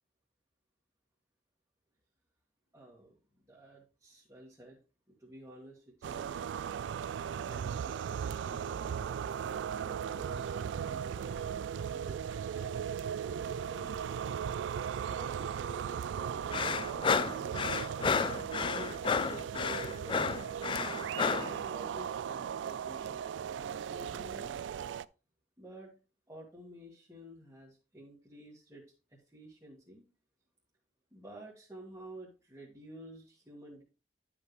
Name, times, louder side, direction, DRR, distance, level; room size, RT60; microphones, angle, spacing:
voice 1, 2.7-3.1 3.5-4.8 5.2-6.5 7.3-11.6 11.9-12.8 13.2-14.3 15.1-17.9 18.5-20.2 21.4-23.2 23.5-24.6 25.6-25.9 26.3-28.8 29.3-30.0 31.1-33.8, right 1 dB, 15° right, -6 dB, 1.8 m, -50 dB
sound 1, 6.0-25.0, right 8 dB, 80° right, 0.3 m, -37 dB
sound 2, 16.5-21.5, left 5 dB, 25° left, 0.3 m, -31 dB
11.0 x 5.1 x 3.2 m, 0.34 s
head